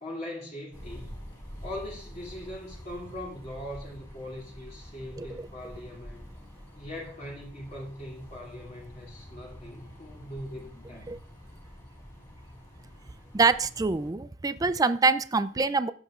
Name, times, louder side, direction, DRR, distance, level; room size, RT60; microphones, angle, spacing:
voice 1, 0.0-1.2 1.6-6.3 6.8-11.2, left 1 dB, 40° left, -3 dB, 2.6 m, -41 dB
sound 1, 0.7-14.1, equal, 20° left, 4.1 m, -47 dB
voice 2, 13.3-15.9, right 4 dB, 20° right, 13 dB, 0.4 m, -25 dB
14.5 x 8.0 x 2.5 m, 0.43 s
head